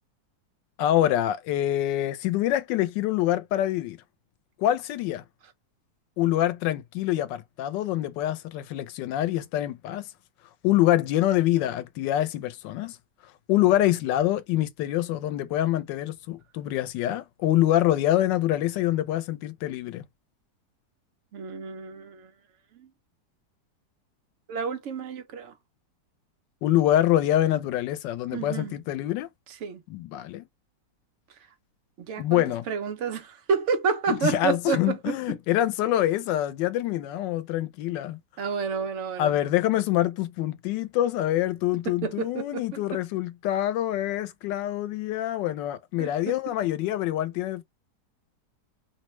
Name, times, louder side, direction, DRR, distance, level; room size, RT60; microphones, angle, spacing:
voice 1, 0.8-4.0 4.6-5.2 6.2-10.0 10.6-13.0 13.5-20.0 26.6-29.3 29.9-30.5 32.2-32.7 34.1-38.2 39.2-47.6, left 13 dB, 85° left, 1.3 m, -25 dB
voice 2, 21.3-22.3 22.7-22.9 24.5-25.5 28.3-28.7 29.5-29.8 32.1-35.4 38.4-39.4 42.0-43.0 46.0-46.4, right 5 dB, 60° right, 0.8 m, -30 dB
3.2 x 2.1 x 3.0 m
omnidirectional pair, 1.9 m